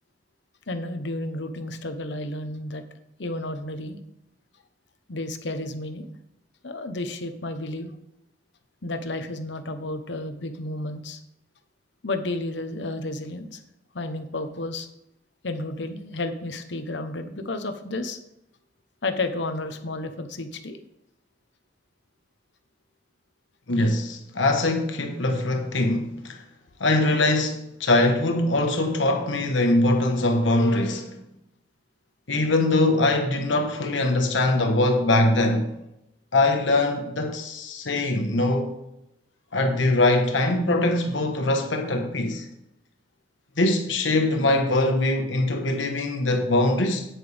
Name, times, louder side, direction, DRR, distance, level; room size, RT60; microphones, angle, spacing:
voice 1, 0.7-2.8 3.2-4.0 5.1-6.1 6.6-8.0 8.8-11.2 12.0-13.6 13.9-14.9 15.4-18.2 19.0-20.8, left 2 dB, 70° left, 1.0 m, -32 dB
voice 2, 23.7-26.4 26.8-31.2 32.3-35.7 36.3-38.8 39.5-42.5 43.6-47.0, left 2 dB, 85° left, 1.2 m, -22 dB
9.1 x 9.0 x 3.5 m
head